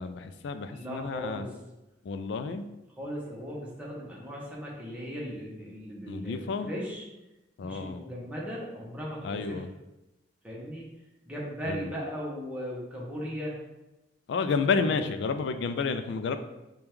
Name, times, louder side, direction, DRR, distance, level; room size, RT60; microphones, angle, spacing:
voice 1, 0.0-1.5 2.0-2.7 6.1-6.7 7.6-8.0 9.2-9.7 11.7-11.9 14.3-16.4, left 4 dB, 70° left, 9 dB, 0.3 m, -30 dB
voice 2, 0.7-1.5 3.0-7.1 7.6-9.6 10.4-10.8 11.3-13.5 14.7-15.0, equal, 5° right, -5 dB, 0.9 m, -37 dB
5.1 x 2.3 x 3.1 m, 0.98 s
head